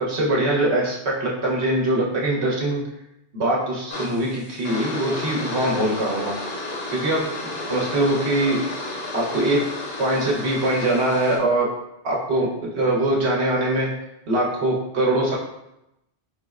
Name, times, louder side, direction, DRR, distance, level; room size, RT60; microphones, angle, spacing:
voice 1, 0.1-2.8 3.3-6.3 6.9-8.6 9.1-9.6 10.0-11.7 12.0-13.9 14.3-15.4, right 1 dB, 70° right, -3 dB, 1.2 m, -22 dB
sound 1, 3.9-11.4, left 2 dB, 65° left, 1.0 m, -32 dB
4.3 x 3.1 x 2.4 m, 0.86 s
omnidirectional pair, 1.2 m